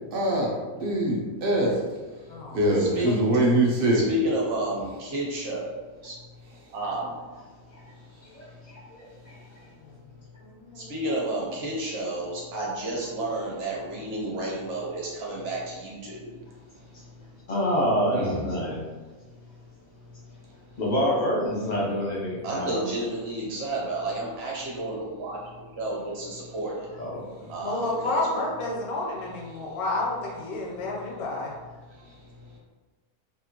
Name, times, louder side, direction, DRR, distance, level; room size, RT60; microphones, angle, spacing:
voice 1, 0.1-1.8 2.5-4.0 18.1-18.4, right 1 dB, 70° right, -2 dB, 0.5 m, -23 dB
voice 2, 2.8-3.2 3.9-5.7 6.0-6.1 6.7-7.2 10.7-16.4 22.4-25.4 25.7-26.9 27.5-28.3, right 1 dB, 50° right, -4 dB, 1.0 m, -31 dB
voice 3, 8.2-9.4 11.9-12.0 16.9-17.0 17.5-18.8 20.8-22.8 27.0-27.5, equal, 50° left, -4 dB, 0.5 m, -27 dB
voice 4, 10.4-10.9 27.6-31.5, left 2 dB, 90° left, -2 dB, 1.2 m, -30 dB
2.8 x 2.4 x 2.8 m, 1.4 s
omnidirectional pair, 1.5 m